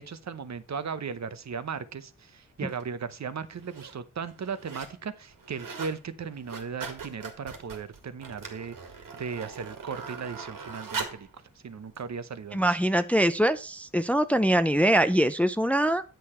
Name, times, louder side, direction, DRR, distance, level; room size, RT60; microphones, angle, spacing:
voice 1, 0.0-8.8 9.1-11.3 11.6-12.8, right 6 dB, 55° right, 12 dB, 0.8 m, -37 dB
sound 1, 2.7-2.8 3.5-3.9 4.3-5.0 5.3-6.0 6.3-11.3 12.0-12.1, right 5 dB, 80° right, 2.0 m, -40 dB
voice 2, 12.5-16.0, right 1 dB, 5° left, 11 dB, 0.4 m, -23 dB
9.3 x 6.6 x 4.3 m, 0.32 s
wide cardioid pair, 105°, 33 cm